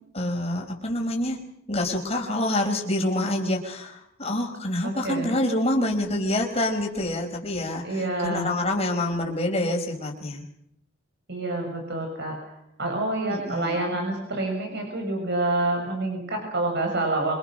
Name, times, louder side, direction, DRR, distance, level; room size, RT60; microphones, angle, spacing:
voice 1, 0.1-1.4 1.7-10.4 13.3-13.8, left 1 dB, 30° left, 1 dB, 5.0 m, -27 dB
voice 2, 4.8-5.3 7.8-8.4 11.3-12.3 12.8-17.4, right 2 dB, 55° right, 2 dB, 6.5 m, -27 dB
26.5 x 24.0 x 6.6 m, 0.76 s
head